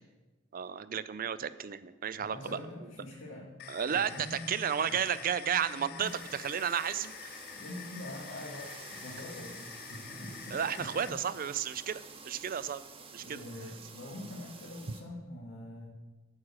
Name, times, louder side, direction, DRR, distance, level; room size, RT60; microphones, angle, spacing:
voice 1, 0.5-2.6 3.7-7.4 10.5-12.8 13.1-13.4, right 8 dB, 45° right, 15 dB, 0.4 m, -33 dB
voice 2, 2.2-3.5 3.9-5.0 5.7-6.1 7.5-11.2 13.2-15.9, left 1 dB, 85° left, -5 dB, 2.1 m, -45 dB
sound 1, 3.6-11.1, left 11 dB, 50° left, 0.3 m, -47 dB
sound 2, 6.0-15.0, right 4 dB, 30° right, 1.2 m, -50 dB
9.5 x 6.4 x 7.4 m, 1.2 s
head